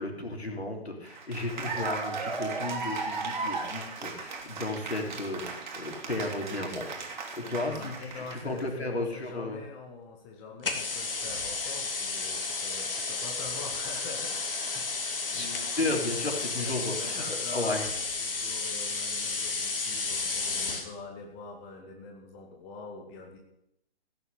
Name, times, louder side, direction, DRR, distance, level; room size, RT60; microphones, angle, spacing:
voice 1, 0.0-9.6 15.3-15.5 15.8-17.9, left 2 dB, 80° left, 2 dB, 3.4 m, -34 dB
Cheering / Applause, 1.1-8.6, right 4 dB, 45° right, 2.7 m, -36 dB
voice 2, 7.4-23.4, left 4 dB, 5° left, 1 dB, 0.5 m, -45 dB
sound 1, 10.6-20.9, left 4 dB, 60° left, 2.3 m, -32 dB
15.5 x 7.0 x 7.9 m, 0.80 s
figure-of-eight pair, 135°, 31 cm